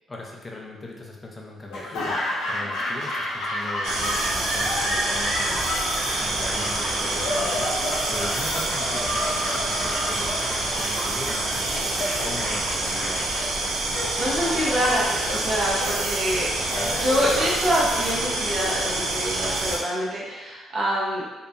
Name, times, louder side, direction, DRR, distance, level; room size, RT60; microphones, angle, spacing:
voice 1, 0.1-7.7 8.1-13.3 16.7-17.0, left 2 dB, 20° left, -1 dB, 0.5 m, -39 dB
Laughter / Applause, 1.7-19.8, left 1 dB, 90° left, 0.6 m, -31 dB
sound 1, 3.8-19.8, right 2 dB, 80° right, 0.4 m, -27 dB
voice 2, 13.9-16.5 17.0-21.4, equal, 50° right, -5 dB, 0.8 m, -26 dB
2.8 x 2.2 x 2.4 m, 1.2 s
cardioid pair, 90°, 0 cm